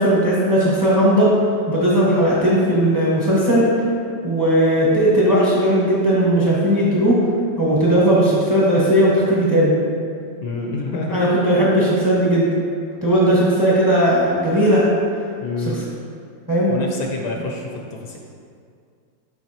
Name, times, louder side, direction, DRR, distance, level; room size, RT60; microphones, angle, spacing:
voice 1, 0.0-1.3 1.7-3.7 4.2-7.2 7.6-9.7 11.1-12.5 13.0-14.8 15.6-15.7 16.5-16.7, right 1 dB, 15° right, -6 dB, 0.9 m, -17 dB
voice 2, 10.4-11.4 15.4-15.8 16.7-18.2, left 2 dB, 70° left, 0 dB, 1.3 m, -27 dB
7.1 x 5.6 x 2.9 m, 2.2 s
omnidirectional pair, 2.0 m